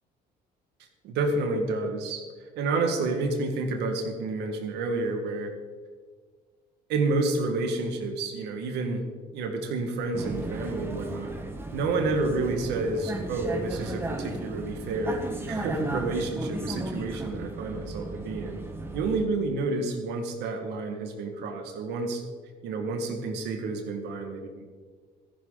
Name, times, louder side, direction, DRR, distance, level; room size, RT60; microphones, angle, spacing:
voice 1, 1.0-5.5 6.9-9.1 9.3-11.3 11.7-18.6 18.9-22.2 22.6-24.6, right 3 dB, 85° right, 5 dB, 1.9 m, -29 dB
Vehicle, 10.1-19.3, right 2 dB, 15° right, 1.5 m, -35 dB
14.0 x 11.0 x 4.0 m, 1.5 s
cardioid pair, 110°, 17 cm